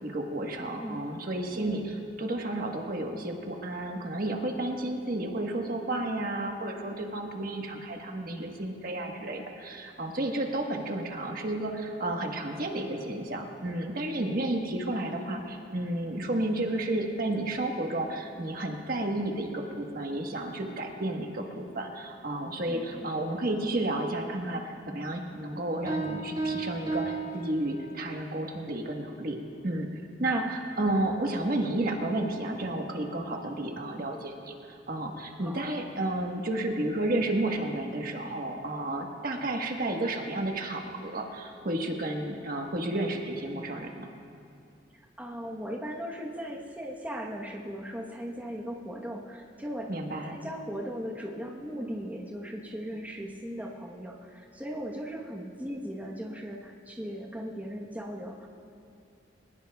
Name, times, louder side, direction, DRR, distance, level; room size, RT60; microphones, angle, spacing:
voice 1, 0.0-29.4 29.6-29.9 30.2-44.1 49.9-50.4, right 1 dB, 50° right, 2 dB, 1.3 m, -32 dB
voice 2, 0.6-1.0 1.5-1.9 14.4-14.7 22.7-23.1 30.3-30.5 35.4-35.6 44.9-49.9 50.2-58.5, equal, 10° right, -2 dB, 1.1 m, -38 dB
sound 1, 25.9-28.3, right 3 dB, 25° right, 2.0 m, -34 dB
22.5 x 19.5 x 2.3 m, 2.5 s
head